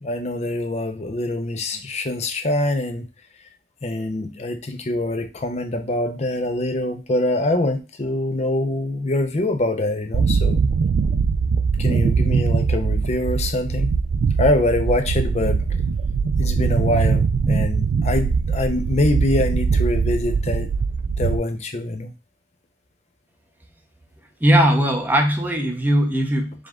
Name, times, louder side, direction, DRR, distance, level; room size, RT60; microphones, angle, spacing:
voice 1, 0.0-3.1 3.8-10.6 11.8-13.9 14.4-15.6 16.4-20.7 21.2-22.1, left 1 dB, 40° left, 6 dB, 0.6 m, -24 dB
sound 1, 10.1-21.4, right 5 dB, 75° right, 0.3 m, -21 dB
voice 2, 24.4-26.7, equal, 10° right, 3 dB, 0.7 m, -19 dB
5.1 x 2.4 x 3.6 m, 0.30 s
head